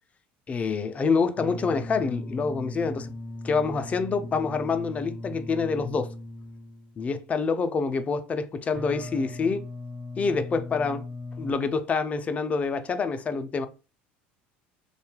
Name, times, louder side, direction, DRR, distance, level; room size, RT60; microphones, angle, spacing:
voice 1, 0.5-3.1 3.4-6.1 7.0-9.6 10.2-11.1 11.4-13.7, left 4 dB, 25° left, 0.4 m, -27 dB
sound 1, 1.4-7.0 8.7-11.5, left 2 dB, 20° right, 0.7 m, -38 dB
2.6 x 2.2 x 3.1 m
supercardioid pair, 105°, 5 cm